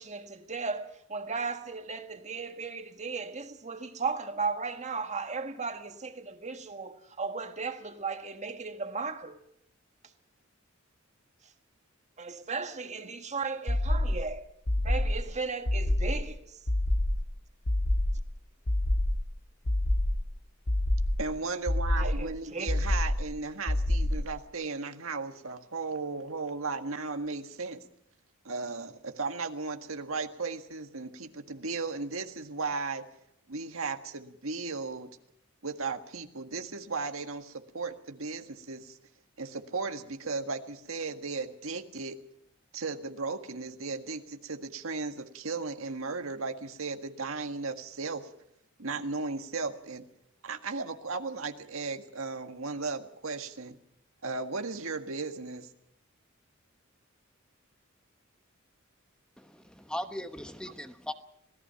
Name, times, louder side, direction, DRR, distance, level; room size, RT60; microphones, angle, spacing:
voice 1, 0.0-9.4 12.2-14.4 14.8-16.6 22.0-22.7, right 4 dB, 35° right, 1.7 m, -36 dB
sound 1, 13.7-14.3 14.7-15.3 15.7-16.3 16.7-17.3 17.7-18.3 18.7-19.3 19.7-20.3 20.7-21.3 21.7-22.3 22.7-23.3 23.7-24.3, left 1 dB, 75° left, 1.7 m, -27 dB
voice 2, 21.2-27.8 28.5-33.0 33.5-35.1 35.6-39.0 39.4-42.2 42.7-48.3 48.8-50.0 50.4-53.8 54.2-55.7, right 4 dB, 90° right, 1.7 m, -36 dB
voice 3, 59.4-61.1, left 1 dB, 5° left, 1.0 m, -38 dB
26.5 x 17.5 x 5.8 m
head